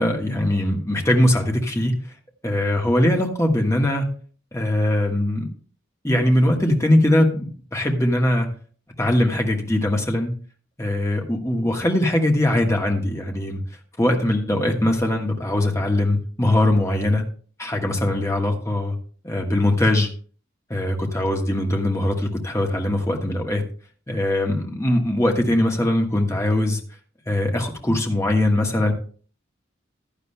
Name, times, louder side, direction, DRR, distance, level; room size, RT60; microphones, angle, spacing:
voice 1, 0.0-1.9 2.4-4.1 4.5-5.5 6.0-8.5 9.0-10.3 10.8-13.6 14.0-17.2 17.6-19.0 19.2-20.1 20.7-23.6 24.1-26.8 27.3-28.9, left 1 dB, 15° left, 2 dB, 1.3 m, -21 dB
15.5 x 10.5 x 2.2 m, 0.43 s
head